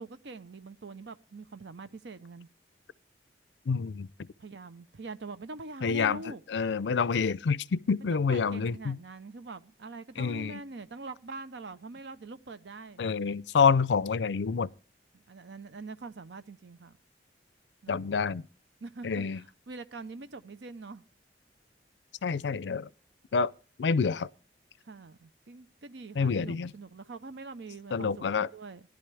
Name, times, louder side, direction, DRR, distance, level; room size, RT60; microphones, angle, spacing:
voice 1, 0.0-2.5 4.4-6.4 8.3-13.0 15.3-17.0 17.8-18.0 18.8-21.0 24.9-28.8, right 3 dB, 80° right, 0.7 m, -44 dB
voice 2, 3.7-4.3 5.8-9.0 10.2-10.6 13.0-14.7 17.9-18.5 19.0-19.4 22.2-22.9 23.3-23.5 23.8-24.3 26.2-26.7 27.9-28.5, left 5 dB, 80° left, 0.5 m, -27 dB
16.5 x 11.0 x 3.3 m
head